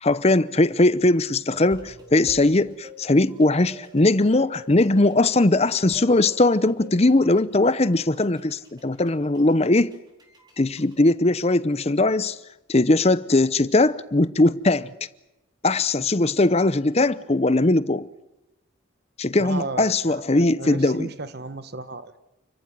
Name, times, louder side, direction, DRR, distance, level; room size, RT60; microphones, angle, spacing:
voice 1, 0.0-9.9 10.6-12.4 12.7-14.9 15.6-18.1 19.2-21.1, left 2 dB, 30° left, 0.7 m, -20 dB
sound 1, 1.5-11.1, left 1 dB, 20° right, 4.4 m, -47 dB
voice 2, 19.4-22.2, right 3 dB, 50° right, 1.2 m, -34 dB
29.5 x 14.5 x 9.4 m
head